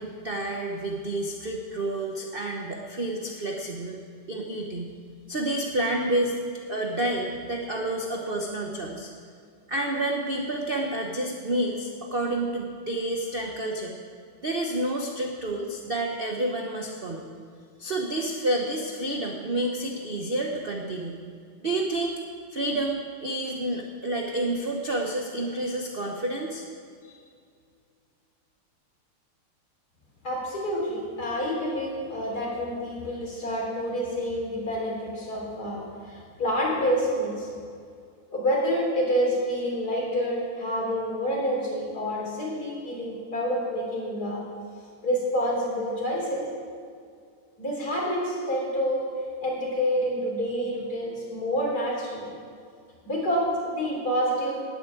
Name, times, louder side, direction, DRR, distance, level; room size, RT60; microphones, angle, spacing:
voice 1, 0.0-4.0 4.3-4.9 5.3-6.3 6.7-9.1 9.7-14.0 14.4-17.2 17.8-21.2 21.6-22.2 22.5-26.6 27.0-27.2, right 1 dB, 40° right, 0 dB, 0.8 m, -29 dB
voice 2, 30.2-37.5 38.3-44.4 45.0-46.5 47.6-49.0 49.4-52.3 53.1-54.6, equal, 45° left, -3 dB, 4.0 m, -28 dB
9.5 x 9.4 x 9.2 m, 2.2 s
omnidirectional pair, 2.3 m